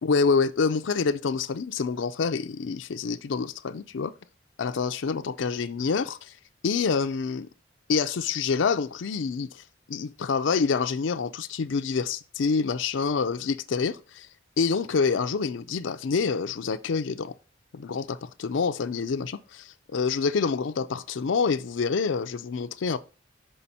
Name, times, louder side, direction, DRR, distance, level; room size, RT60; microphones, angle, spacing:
voice 1, 0.0-4.1 4.6-6.3 6.6-7.5 7.9-9.5 9.9-14.3 14.6-17.3 17.7-23.0, left 5 dB, 85° left, 0.5 m, -27 dB
5.6 x 5.3 x 4.1 m
head